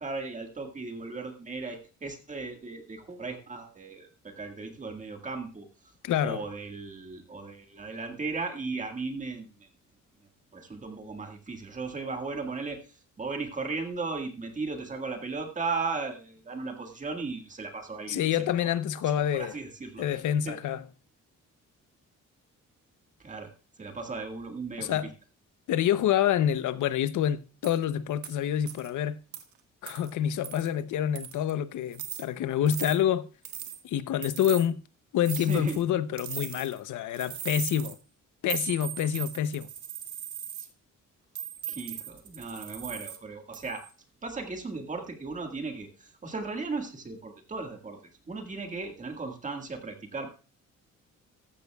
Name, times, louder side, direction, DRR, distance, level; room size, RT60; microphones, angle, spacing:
voice 1, 0.0-5.7 6.2-9.7 10.5-18.2 18.5-18.7 19.3-20.5 23.2-23.5 23.8-25.0 35.4-35.8 41.7-43.8 44.2-48.0 48.3-50.3, right 4 dB, 25° right, 1.8 m, -36 dB
voice 2, 6.0-6.4 18.1-19.5 20.0-20.8 24.8-25.1 25.7-29.2 29.8-33.3 33.8-34.8 35.1-38.0 38.4-39.7, left 10 dB, 75° left, 0.8 m, -27 dB
sound 1, 27.6-27.8 28.2-28.3 28.7-28.9 29.3-29.4 29.9-30.1 30.4-30.7 31.2-31.5 31.9-32.2 32.7-33.0 33.5-33.8 34.2-34.7 35.2-35.8 36.2-36.8 37.1-37.9 38.5-40.7 41.4-43.2 43.5-43.9, right 10 dB, 70° right, 1.6 m, -38 dB
14.5 x 13.5 x 2.3 m
cardioid pair, 160°, 31 cm